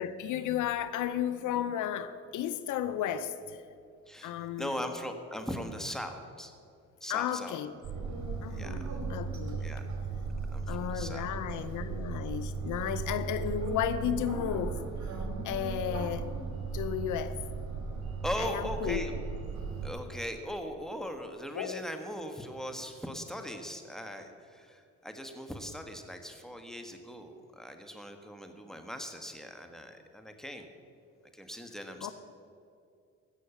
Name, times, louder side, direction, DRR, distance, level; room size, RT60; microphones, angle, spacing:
voice 1, 0.0-3.6 4.2-4.7 7.1-7.8 8.4-9.7 10.7-14.8 15.4-16.3 16.7-17.4 18.4-19.0 21.5-21.8 32.0-32.1, left 10 dB, 80° left, 13 dB, 0.7 m, -33 dB
voice 2, 4.6-6.5 7.0-7.8 8.5-8.7 9.6-9.8 10.5-11.3 18.2-19.1 19.8-30.7 31.3-32.1, equal, ahead, 5 dB, 1.4 m, -39 dB
sound 1, 7.8-19.9, right 4 dB, 65° right, 2.9 m, -36 dB
15.5 x 6.5 x 7.0 m, 2.4 s
cardioid pair, 90°, 30 cm